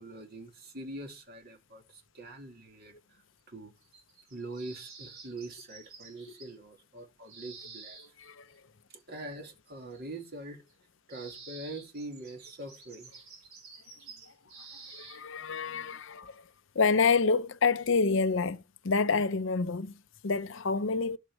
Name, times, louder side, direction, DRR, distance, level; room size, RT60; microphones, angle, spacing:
voice 1, 0.0-3.2 3.5-3.7 4.3-8.0 8.9-10.6 11.1-13.1, right 2 dB, 45° right, 2.3 m, -43 dB
sound 1, 3.8-6.5 7.3-8.3 9.9-10.3 10.7-10.8 11.1-15.2, right 4 dB, 70° right, 3.7 m, -50 dB
voice 2, 14.9-16.4 16.7-21.2, left 4 dB, 60° left, 0.6 m, -28 dB
10.5 x 7.3 x 4.6 m
head